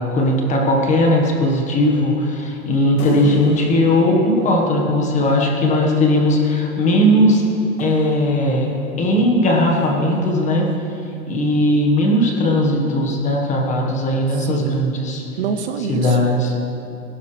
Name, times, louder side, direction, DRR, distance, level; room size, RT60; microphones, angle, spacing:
voice 1, 0.0-7.4 7.8-8.7 9.0-10.7 11.3-15.2 15.9-16.5, left 1 dB, 15° left, 0 dB, 1.4 m, -18 dB
sound 1, 3.0-5.7 7.1-9.2, left 2 dB, 35° left, 1.4 m, -34 dB
voice 2, 14.3-14.9 15.4-16.2, right 6 dB, 45° right, 8 dB, 0.7 m, -26 dB
21.0 x 12.0 x 3.3 m, 2.7 s
supercardioid pair, 160°, 46 cm